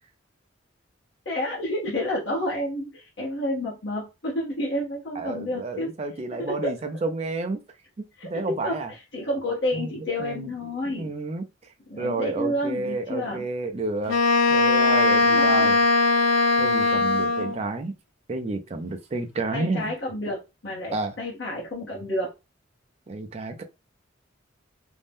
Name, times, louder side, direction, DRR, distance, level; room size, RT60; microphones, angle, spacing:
voice 1, 1.2-5.9 6.4-6.7 8.2-11.1 11.9-13.4 15.3-15.7 19.5-22.3, left 1 dB, 60° left, 0.9 m, -30 dB
voice 2, 5.2-7.6 8.2-8.9 9.7-9.9 10.2-10.5 10.8-11.4 12.0-14.2 14.5-15.8 16.6-17.9 18.3-19.9 20.9-21.1 23.1-23.6, right 3 dB, 30° right, 0.4 m, -30 dB
Wind instrument woodwind instrument, 14.1-17.6, left 3 dB, 85° left, 0.6 m, -20 dB
2.6 x 2.1 x 3.4 m
head